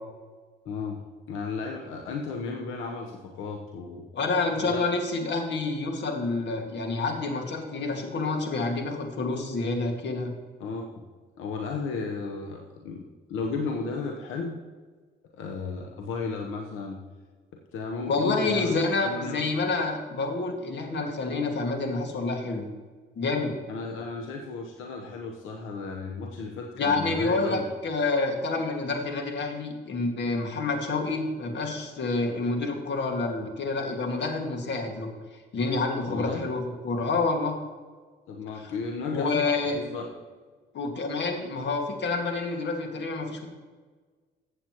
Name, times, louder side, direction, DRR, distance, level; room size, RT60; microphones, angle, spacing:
voice 1, 0.6-1.0 1.3-4.0 4.6-4.8 10.6-11.0 11.4-14.5 15.3-17.0 17.7-19.4 23.7-27.7 36.1-36.5 38.3-40.0, left 4 dB, 90° left, 1 dB, 1.0 m, -34 dB
voice 2, 4.1-10.3 18.1-22.7 23.2-23.6 26.8-35.1 35.5-37.6 39.1-39.8 40.7-43.5, left 3 dB, 60° left, 3 dB, 2.0 m, -28 dB
15.0 x 8.1 x 3.0 m, 1.5 s
cardioid pair, 90°, 20 cm